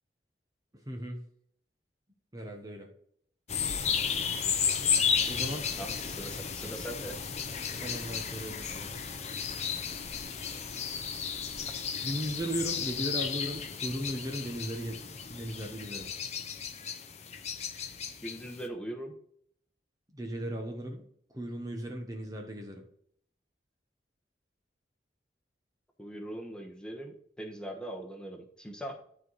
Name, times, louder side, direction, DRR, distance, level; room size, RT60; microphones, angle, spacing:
voice 1, 0.9-1.2 2.3-2.9 5.3-5.7 7.8-8.9 12.0-16.1 20.1-21.0 21.3-22.8, right 1 dB, 20° right, 2 dB, 1.1 m, -37 dB
sound 1, 3.5-18.6, left 7 dB, 40° left, 0.8 m, -33 dB
voice 2, 5.8-7.2 18.2-19.1 26.0-29.0, right 1 dB, 5° left, 1 dB, 1.3 m, -41 dB
11.5 x 4.7 x 4.1 m, 0.65 s
head